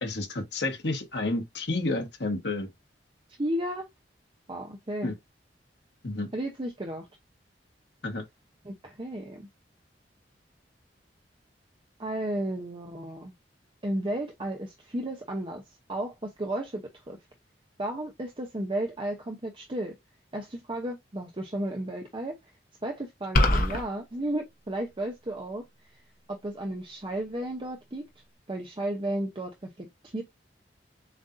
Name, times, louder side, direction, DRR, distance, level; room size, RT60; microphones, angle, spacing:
voice 1, 0.0-2.7 5.0-5.1 6.0-6.3 8.0-8.2, left 2 dB, 70° left, 1.5 m, -30 dB
voice 2, 3.4-3.9 4.5-5.1 6.3-7.1 8.6-9.5 12.0-13.3 13.8-15.6 15.9-17.2 17.8-20.0 20.3-22.4 22.8-25.6 26.3-28.1 28.5-30.2, right 1 dB, 30° right, 0.7 m, -33 dB
sound 1, 23.3-23.8, left 1 dB, 50° left, 1.1 m, -21 dB
7.3 x 2.6 x 2.6 m
head